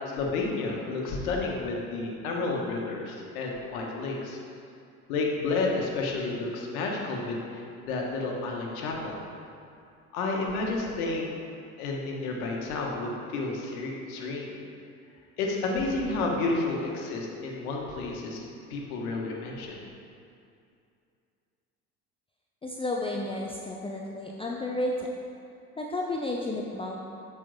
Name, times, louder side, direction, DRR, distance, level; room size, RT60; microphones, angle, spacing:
voice 1, 0.1-4.4 5.1-9.1 10.1-11.3 11.8-14.6 15.4-18.4 18.7-19.8, left 3 dB, 70° left, -1 dB, 1.4 m, -31 dB
voice 2, 22.6-25.1 25.8-27.0, left 1 dB, 15° left, -1 dB, 0.6 m, -32 dB
7.6 x 5.6 x 4.0 m, 2.5 s
hypercardioid pair, 65°, 45 cm